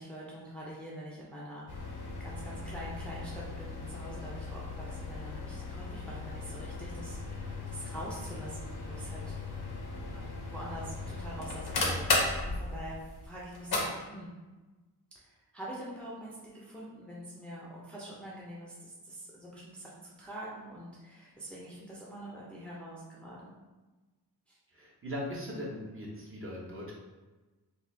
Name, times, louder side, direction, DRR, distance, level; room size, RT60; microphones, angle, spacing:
voice 1, 0.0-1.7 2.2-9.3 10.1-12.1 12.4-14.3 15.1-23.5 24.5-24.6, right 1 dB, 5° left, -6 dB, 0.6 m, -45 dB
sound 1, 1.7-13.8, left 3 dB, 65° left, 0.8 m, -36 dB
voice 2, 24.7-26.9, equal, 30° right, -4 dB, 0.8 m, -39 dB
4.0 x 2.4 x 2.7 m, 1.2 s
wide cardioid pair, 110°, 40 cm